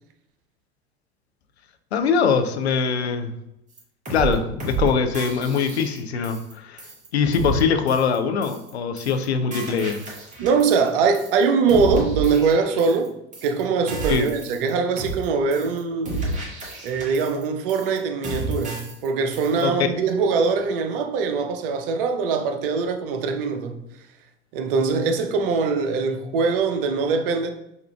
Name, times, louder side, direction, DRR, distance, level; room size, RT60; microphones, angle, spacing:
voice 1, 1.9-3.3 4.1-6.8 7.1-10.0 14.1-14.3 19.6-19.7, left 6 dB, 75° left, 0.5 m, -22 dB
sound 1, 3.8-3.9 4.1-4.3 4.6-4.9 5.1-6.5 6.8-7.1 7.3-7.6 7.9-8.2 8.4-8.7 9.0-9.2 9.5-10.9 11.1-11.4 11.7-13.1 13.3-13.6 13.9-14.7 15.0-15.2 15.5-15.8 16.1-17.4 17.7-18.0 18.2-19.1 19.3-19.6, right 3 dB, 25° right, 1.2 m, -31 dB
voice 2, 10.4-13.1 13.4-16.3 16.8-23.8 24.5-27.5, right 5 dB, 55° right, 0.6 m, -22 dB
5.3 x 2.4 x 2.2 m
figure-of-eight pair, 75°, 32 cm